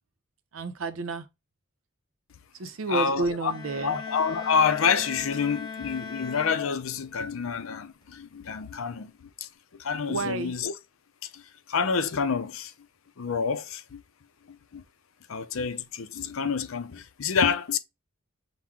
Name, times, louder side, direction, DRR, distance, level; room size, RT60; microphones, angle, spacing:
voice 1, 0.5-1.3 2.5-4.0 10.1-10.5, right 3 dB, 80° right, 0.6 m, -30 dB
voice 2, 2.9-3.5 3.8-10.7 11.2-12.7 13.2-14.0 14.5-14.8 15.3-17.8, left 6 dB, 80° left, 0.5 m, -28 dB
sound 1, 3.4-7.3, left 5 dB, 20° left, 0.8 m, -39 dB
6.0 x 2.2 x 3.6 m
head